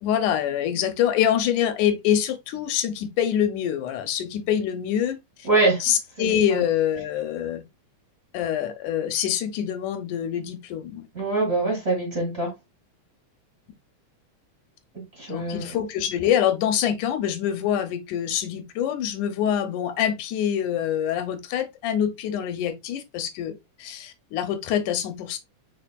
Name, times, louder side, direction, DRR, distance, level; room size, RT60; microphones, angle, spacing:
voice 1, 0.0-5.5 5.8-7.6 8.3-11.1 15.3-25.4, left 10 dB, 85° left, 2.2 m, -25 dB
voice 2, 5.5-5.8 6.2-6.3 11.1-12.5 15.2-15.7, right 2 dB, 25° right, 1.8 m, -23 dB
5.4 x 4.3 x 2.3 m
omnidirectional pair, 3.4 m